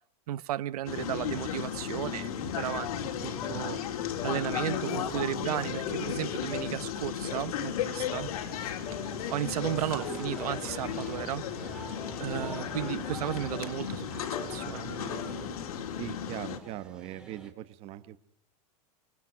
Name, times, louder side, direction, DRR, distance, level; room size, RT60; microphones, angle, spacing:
voice 1, 0.3-3.8 4.2-8.3 9.0-11.4 12.2-15.3, right 13 dB, 85° right, 19 dB, 1.0 m, -34 dB
sound 1, 0.8-16.6, left 8 dB, 80° left, 3.4 m, -35 dB
sound 2, 3.4-3.6 4.2-4.4 4.9-5.2 5.7-6.0 6.5-6.7 7.3-7.5 8.1-8.3 8.8-9.1 9.6-9.9 10.4-10.6 11.2-11.4 12.0-12.2 12.7-13.0 13.5-13.8 14.3-14.5 15.1-15.3, left 7 dB, 25° left, 2.8 m, -42 dB
sound 3, 9.2-17.5, right 2 dB, 5° right, 2.4 m, -46 dB
voice 2, 16.0-18.2, right 14 dB, 30° right, 15 dB, 1.2 m, -40 dB
25.5 x 24.0 x 6.3 m, 0.67 s
supercardioid pair, 170°, 19 cm